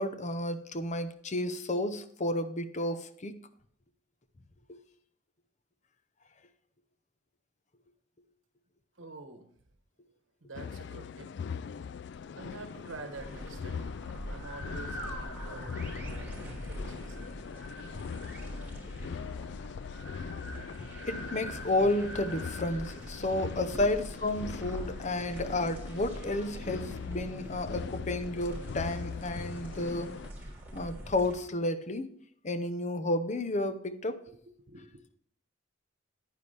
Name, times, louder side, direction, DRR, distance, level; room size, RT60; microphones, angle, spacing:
voice 1, 0.0-3.4 18.8-19.1 21.1-30.2 30.7-32.1 32.4-34.2, left 1 dB, 35° left, 0.8 m, -32 dB
voice 2, 9.0-9.5 10.4-11.3 12.4-13.9 14.3-17.5 23.4-23.9 24.8-24.9 25.2-25.3 27.4-27.5 28.9-29.0 34.3-34.4 34.7-35.0, right 2 dB, 75° right, 1.2 m, -47 dB
sound 1, 10.5-30.3, left 6 dB, 60° left, 0.3 m, -41 dB
sound 2, 13.1-31.4, equal, 10° right, 3.7 m, -43 dB
10.5 x 9.5 x 3.4 m
head